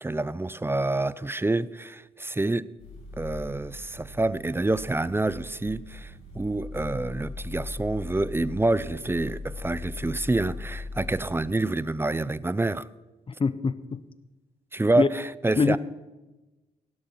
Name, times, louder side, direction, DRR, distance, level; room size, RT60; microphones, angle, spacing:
voice 1, 0.0-2.7 3.2-12.9 14.7-15.8, right 2 dB, 15° right, 0.5 m, -27 dB
sound 1, 2.8-11.4, left 3 dB, 85° left, 5.0 m, -39 dB
voice 2, 13.3-14.0 15.0-15.1 15.6-15.8, left 4 dB, 30° left, 0.8 m, -24 dB
16.5 x 11.5 x 4.6 m
supercardioid pair, 50°, 17 cm